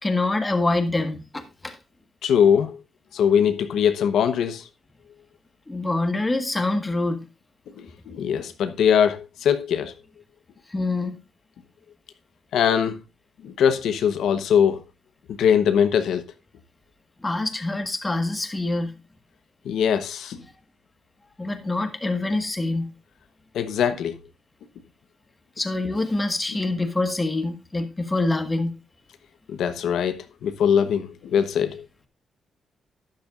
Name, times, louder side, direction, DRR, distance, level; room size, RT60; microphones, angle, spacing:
voice 1, 0.0-1.8 5.7-7.2 10.7-11.2 17.2-18.9 21.4-22.9 25.6-28.7, left 2 dB, 15° left, 1.6 m, -25 dB
voice 2, 2.2-2.8 3.1-4.6 7.7-9.9 12.5-13.0 13.4-14.8 15.4-16.2 19.6-20.4 23.5-24.2 29.5-31.8, left 8 dB, 85° left, 1.1 m, -21 dB
12.0 x 10.5 x 2.5 m
cardioid pair, 120°, 0 cm